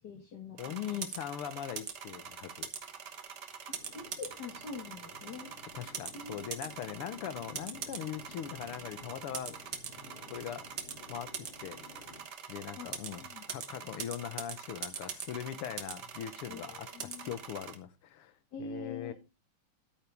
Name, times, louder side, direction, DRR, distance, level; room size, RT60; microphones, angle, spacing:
voice 1, 0.0-1.0 3.9-5.5 6.1-6.7 12.8-13.4 13.7-13.9 16.5-17.3 18.5-19.1, left 4 dB, 50° left, 2.2 m, -45 dB
voice 2, 0.6-2.7 5.7-9.6 10.3-10.7 11.1-11.8 12.5-18.3 18.6-19.1, left 10 dB, 90° left, 1.9 m, -41 dB
sound 1, 0.6-17.8, right 7 dB, 55° right, 1.7 m, -43 dB
sound 2, 3.7-12.2, left 4 dB, 65° left, 2.6 m, -54 dB
11.0 x 9.1 x 3.5 m
omnidirectional pair, 2.4 m